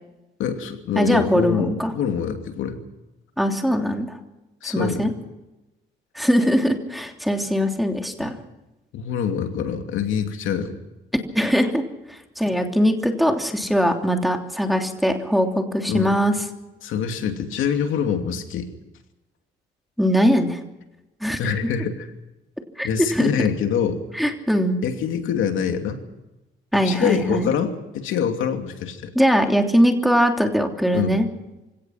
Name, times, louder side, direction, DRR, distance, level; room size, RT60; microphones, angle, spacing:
voice 1, 0.4-2.8 4.6-5.1 8.2-8.3 8.9-10.7 15.9-16.2 16.8-18.7 21.4-22.1 22.8-24.0 24.8-26.0 26.8-29.1 30.9-31.2, left 7 dB, 85° left, 5 dB, 2.8 m, -25 dB
voice 2, 0.9-1.9 3.4-4.2 4.6-5.1 6.1-8.3 11.3-11.8 12.1-16.3 20.0-20.6 21.2-21.4 22.8-23.3 24.1-24.8 26.7-27.5 29.1-31.3, equal, ahead, 3 dB, 3.1 m, -21 dB
27.5 x 17.5 x 5.9 m, 1.0 s
cardioid pair, 90°, 20 cm